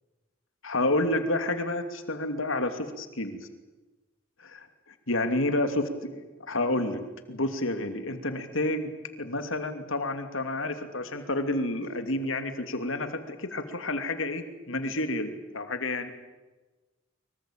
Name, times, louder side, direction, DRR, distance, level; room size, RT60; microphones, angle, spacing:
voice 1, 0.6-3.4 4.4-4.7 5.1-7.0 7.3-8.9 9.2-16.1, left 2 dB, 70° left, 8 dB, 2.8 m, -29 dB
25.0 x 24.0 x 8.8 m, 1.2 s
head